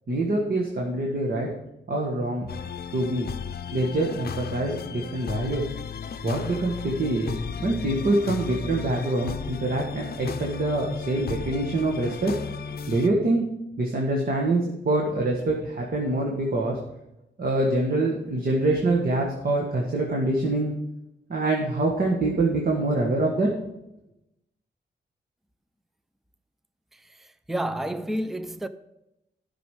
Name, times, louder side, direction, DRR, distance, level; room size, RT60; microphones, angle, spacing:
voice 1, 0.1-1.5 1.9-2.5 2.9-3.3 3.7-5.7 6.2-7.3 7.6-12.3 12.9-13.4 13.8-16.8 17.4-20.7 21.3-23.5, right 2 dB, 50° right, 1.6 m, -25 dB
sound 1, 2.5-13.1, left 6 dB, 55° left, 0.6 m, -35 dB
voice 2, 26.9-28.7, right 1 dB, ahead, 0.4 m, -31 dB
12.0 x 6.1 x 4.9 m
wide cardioid pair, 115°, 19 cm